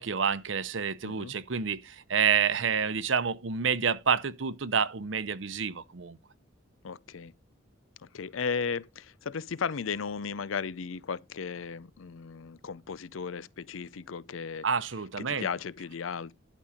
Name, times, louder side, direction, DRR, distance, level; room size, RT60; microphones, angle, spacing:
voice 1, 0.0-6.2 14.6-15.5, right 6 dB, 65° right, 0.8 m, -28 dB
voice 2, 1.0-1.3 6.8-7.3 8.1-14.7 15.2-16.4, left 6 dB, 80° left, 0.5 m, -35 dB
11.5 x 5.5 x 5.1 m
head